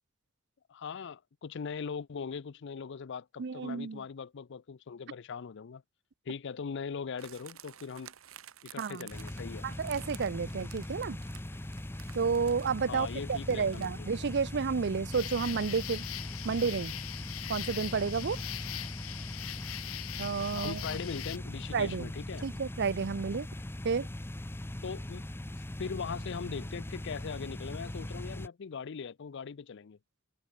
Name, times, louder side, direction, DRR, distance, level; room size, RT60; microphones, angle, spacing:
voice 1, 0.7-5.8 6.3-8.1 8.6-9.7 12.9-13.9 20.5-22.4 24.8-25.2 25.8-30.0, left 6 dB, 60° left, 0.5 m, -40 dB
voice 2, 3.4-4.0 8.8-9.1 9.6-11.2 12.1-16.0 16.4-17.0 17.5-18.4 20.2-21.0 21.7-22.1 22.4-23.5 23.8-24.1, right 5 dB, 55° right, 0.6 m, -31 dB
sound 1, 7.2-15.8 16.0-16.1, right 11 dB, 85° right, 1.5 m, -53 dB
sound 2, 9.1-28.5, left 1 dB, 10° left, 0.6 m, -40 dB
sound 3, 15.1-21.4, left 14 dB, 80° left, 0.8 m, -41 dB
head